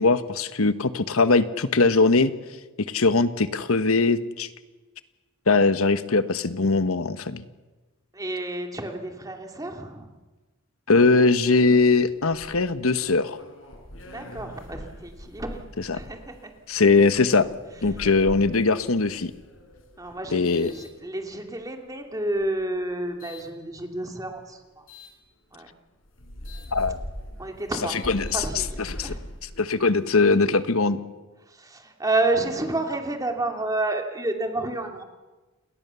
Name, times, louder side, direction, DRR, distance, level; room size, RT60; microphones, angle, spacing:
voice 1, 0.0-2.3 2.9-4.5 5.5-7.4 10.9-13.4 15.8-16.0 16.7-17.5 17.8-19.3 20.3-20.7 26.7-27.0 27.9-29.1 29.6-31.0, left 3 dB, 90° left, 12 dB, 1.3 m, -21 dB
voice 2, 8.1-10.1 14.1-15.6 15.9-16.5 20.0-24.8 25.5-25.7 27.4-28.0 28.3-28.8 29.0-29.2 31.6-35.0, right 2 dB, 15° right, 4 dB, 2.7 m, -30 dB
sound 1, 11.6-21.6 22.2-23.5 24.9-25.1 25.7-25.8 26.0-30.2, equal, 70° left, 4.8 m, -42 dB
29.0 x 20.5 x 7.0 m, 1.2 s
head